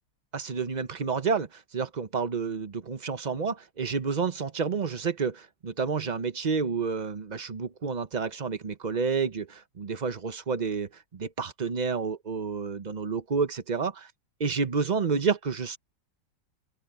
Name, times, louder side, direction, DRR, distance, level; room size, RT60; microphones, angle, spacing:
voice 1, 0.3-14.1 14.4-15.8, right 5 dB, 35° right, 0.7 m, -30 dB
open air
omnidirectional pair, 1.9 m